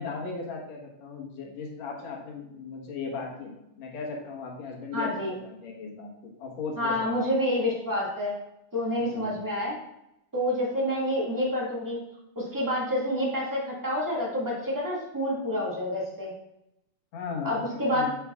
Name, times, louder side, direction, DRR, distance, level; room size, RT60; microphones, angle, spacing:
voice 1, 0.0-7.3 9.1-9.3 17.1-18.1, left 4 dB, 65° left, -1 dB, 2.4 m, -37 dB
voice 2, 4.9-5.3 6.8-8.3 8.7-9.8 10.3-12.0 12.3-16.3 17.4-18.0, left 1 dB, 10° right, -5 dB, 1.0 m, -28 dB
7.9 x 7.0 x 2.4 m, 0.86 s
omnidirectional pair, 3.6 m